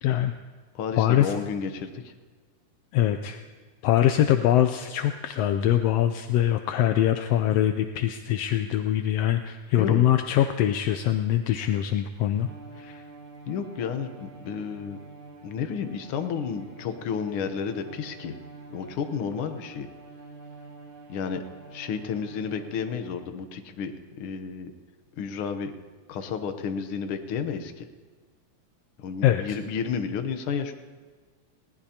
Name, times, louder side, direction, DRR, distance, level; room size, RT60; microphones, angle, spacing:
voice 1, 0.0-0.3 1.0-1.4 2.9-3.4 3.8-12.5 12.8-13.0 29.2-29.4, left 11 dB, 80° left, 7 dB, 1.4 m, -23 dB
voice 2, 0.7-2.1 9.8-10.1 13.5-15.0 15.4-18.3 18.7-19.9 21.1-21.4 21.7-23.9 24.2-24.7 25.2-25.7 26.1-27.8 29.0-30.7, left 6 dB, 65° left, 8 dB, 1.5 m, -31 dB
Bowed string instrument, 12.3-23.6, right 3 dB, 60° right, 2.5 m, -47 dB
20.5 x 17.5 x 2.9 m, 1.5 s
omnidirectional pair, 3.3 m